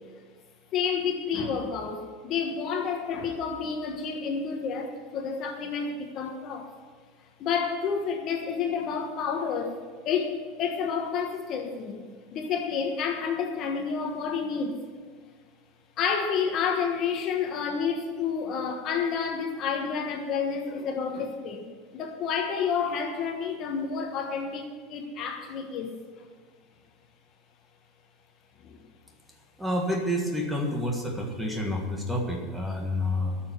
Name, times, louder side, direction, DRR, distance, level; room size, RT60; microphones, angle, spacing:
voice 1, 0.7-6.7 7.4-9.8 10.0-12.0 12.3-14.8 16.0-21.7 21.9-26.3 28.6-28.8, left 6 dB, 35° left, 3 dB, 1.3 m, -30 dB
voice 2, 29.6-33.4, left 1 dB, 5° right, 1 dB, 1.5 m, -29 dB
12.0 x 6.8 x 9.2 m, 1.5 s
supercardioid pair, 165°, 0 cm